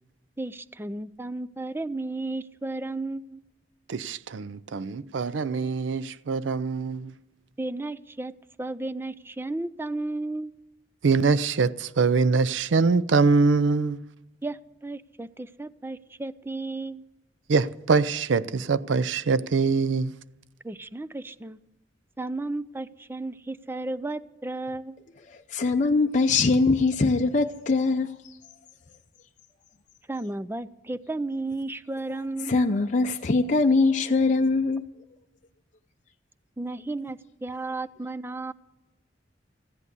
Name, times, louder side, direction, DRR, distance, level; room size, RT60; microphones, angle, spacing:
voice 1, 0.4-3.4 7.6-8.3 8.6-10.6 14.4-17.0 20.6-21.6 22.2-25.0 30.1-32.6 36.6-38.5, right 2 dB, 10° right, 0.4 m, -33 dB
voice 2, 3.9-7.1 11.0-14.0 17.5-20.1, right 4 dB, 75° right, 0.5 m, -23 dB
voice 3, 25.3-28.4 32.4-34.8, left 3 dB, 40° left, 0.6 m, -22 dB
15.0 x 11.0 x 8.2 m
head